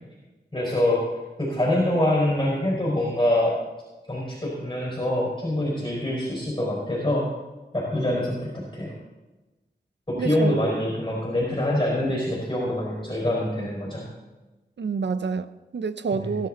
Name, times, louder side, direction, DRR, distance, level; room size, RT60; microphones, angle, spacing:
voice 1, 0.5-1.0 1.4-3.6 4.1-7.3 7.7-8.9 10.1-14.0 16.1-16.3, left 1 dB, 25° left, -4 dB, 4.9 m, -25 dB
voice 2, 10.1-10.6 14.8-16.5, right 5 dB, 85° right, 13 dB, 0.7 m, -28 dB
19.5 x 11.0 x 3.9 m, 1.1 s
wide cardioid pair, 60°, 18 cm